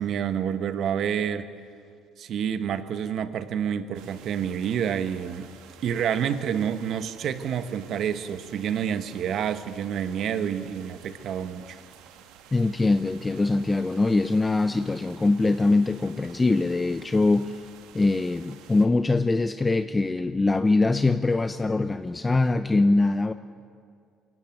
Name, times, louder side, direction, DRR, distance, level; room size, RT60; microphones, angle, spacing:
voice 1, 0.0-1.5 2.2-5.5 5.8-11.8, right 8 dB, 60° right, 11 dB, 1.2 m, -28 dB
sound 1, 3.9-18.9, right 9 dB, 75° right, 1.5 m, -51 dB
voice 2, 12.5-17.6 17.9-23.3, left 3 dB, 20° left, 11 dB, 0.7 m, -23 dB
23.0 x 14.0 x 9.1 m, 2.3 s
hypercardioid pair, 65°, 0 cm